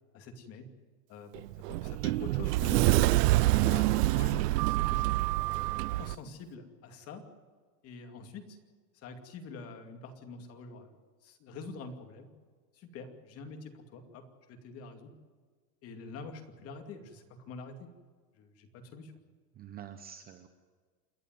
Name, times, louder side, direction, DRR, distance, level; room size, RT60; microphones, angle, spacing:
voice 1, 0.1-0.7 1.1-3.1 3.7-5.2 5.9-7.2 7.8-8.6 8.9-10.9 11.2-12.3 12.7-15.1 15.8-17.9 18.4-19.1, left 3 dB, 30° left, 6 dB, 2.4 m, -45 dB
Sliding door, 1.3-6.1, right 18 dB, 80° right, 0.6 m, -26 dB
voice 2, 3.5-3.9 19.6-20.5, right 10 dB, 20° right, 8 dB, 0.8 m, -44 dB
28.5 x 11.0 x 9.2 m, 1.5 s
supercardioid pair, 165°, 48 cm